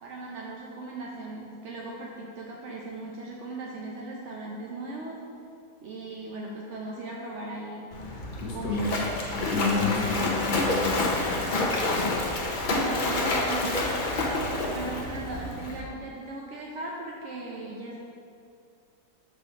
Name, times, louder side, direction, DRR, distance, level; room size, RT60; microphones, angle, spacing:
voice 1, 0.0-5.2 5.8-7.9 8.5-9.0 13.0-13.7 14.7-18.0, right 2 dB, 65° right, -3 dB, 0.7 m, -38 dB
Splash splatter, 7.9-15.8, left 2 dB, 50° left, 0.6 m, -28 dB
voice 2, 8.4-8.9 9.3-11.6 11.9-12.4, left 4 dB, 65° left, -2 dB, 1.3 m, -31 dB
5.6 x 4.0 x 6.0 m, 2.5 s
omnidirectional pair, 1.9 m